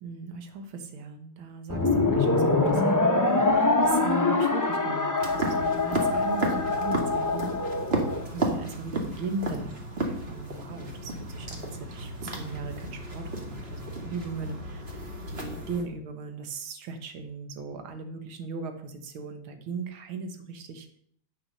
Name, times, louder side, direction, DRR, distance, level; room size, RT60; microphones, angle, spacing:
voice 1, 0.0-7.6 8.2-9.7 10.1-21.0, right 4 dB, 80° right, 6 dB, 2.0 m, -38 dB
sound 1, 1.7-8.2, left 3 dB, 25° left, 0.4 m, -24 dB
sound 2, 5.2-15.8, right 1 dB, 30° right, 1.9 m, -33 dB
9.8 x 6.4 x 6.4 m, 0.65 s
omnidirectional pair, 2.2 m